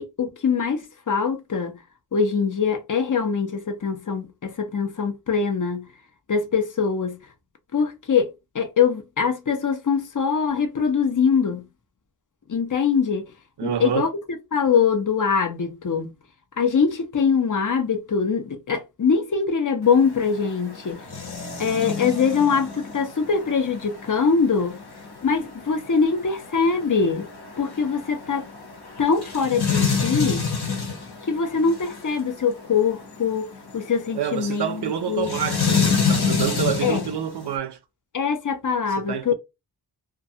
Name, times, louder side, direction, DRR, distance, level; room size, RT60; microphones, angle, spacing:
voice 1, 0.0-1.8 2.1-5.9 6.3-7.2 7.7-11.7 12.5-13.2 13.6-16.1 16.6-21.0 21.6-24.8 25.2-27.3 27.6-28.4 29.0-30.5 31.2-33.5 33.7-35.3 36.8-37.0 38.1-39.3, left 5 dB, 50° left, 0.6 m, -23 dB
voice 2, 13.6-14.1 34.1-37.8 39.0-39.3, right 9 dB, 80° right, 0.5 m, -27 dB
sound 1, 19.8-37.5, left 5 dB, 70° left, 1.0 m, -29 dB
2.4 x 2.2 x 2.7 m
wide cardioid pair, 60°, 40 cm